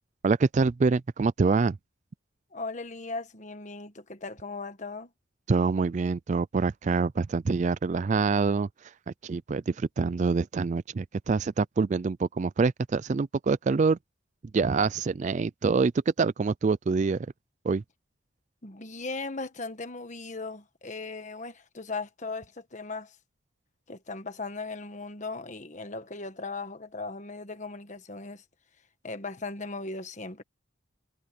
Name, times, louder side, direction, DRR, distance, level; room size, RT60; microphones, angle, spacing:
voice 1, 0.2-1.8 5.5-8.7 9.2-14.0 14.5-15.9 16.2-17.3 17.6-17.8, right 4 dB, 40° right, 0.3 m, -25 dB
voice 2, 2.5-5.1 18.6-23.1 23.9-28.4 29.0-30.4, left 3 dB, 40° left, 1.4 m, -38 dB
head